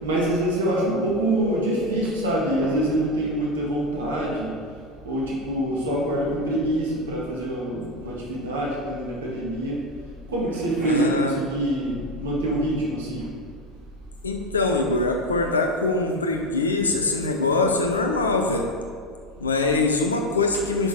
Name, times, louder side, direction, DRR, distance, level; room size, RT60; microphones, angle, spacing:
voice 1, 0.0-4.5 5.0-9.8 10.3-13.2, right 1 dB, 80° right, -4 dB, 2.1 m, -25 dB
Telephone, 1.4-2.1 2.6-2.7 4.5-4.6 5.0-5.2 10.5-11.3 18.4-18.6, left 1 dB, 50° right, 2.2 m, -33 dB
voice 2, 10.8-11.4 14.2-18.7 19.4-20.9, left 3 dB, 85° left, 4 dB, 0.8 m, -23 dB
9.0 x 6.1 x 4.9 m, 2.2 s
figure-of-eight pair, 60°, 0 cm